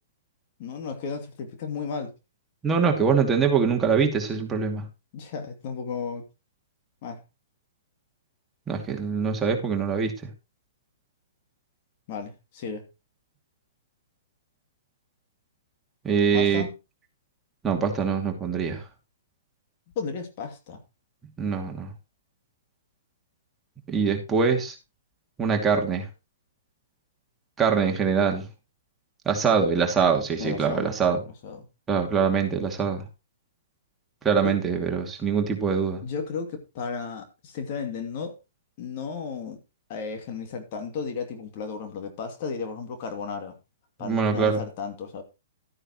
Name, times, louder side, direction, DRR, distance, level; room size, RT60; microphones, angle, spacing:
voice 1, 0.6-2.1 5.1-6.3 7.0-7.2 12.1-12.9 16.3-16.7 20.0-20.8 30.4-30.9 31.3-31.7 34.4-34.6 36.0-38.4 38.8-39.6 39.9-43.5 44.0-45.2, left 5 dB, 45° left, 2.6 m, -34 dB
voice 2, 2.6-4.8 8.7-10.2 16.0-16.7 17.6-18.8 21.4-21.9 23.9-24.7 25.4-26.1 27.6-28.5 29.3-31.2 31.9-33.0 34.2-36.0 44.0-44.6, right 6 dB, 15° right, 2.5 m, -23 dB
13.0 x 9.7 x 3.1 m
figure-of-eight pair, 120°, 0 cm